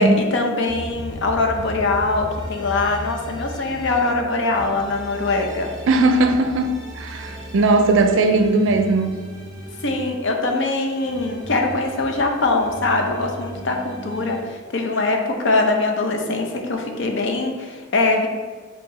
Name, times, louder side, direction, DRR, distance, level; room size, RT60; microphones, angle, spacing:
voice 1, 0.0-5.7 9.8-18.3, left 3 dB, 60° left, 3 dB, 0.6 m, -22 dB
sound 1, 0.7-4.1 4.5-10.1 10.5-14.4, equal, 20° right, 0.7 m, -36 dB
voice 2, 5.9-9.2, right 2 dB, 65° right, 7 dB, 0.4 m, -18 dB
4.6 x 2.8 x 4.1 m, 1.5 s
head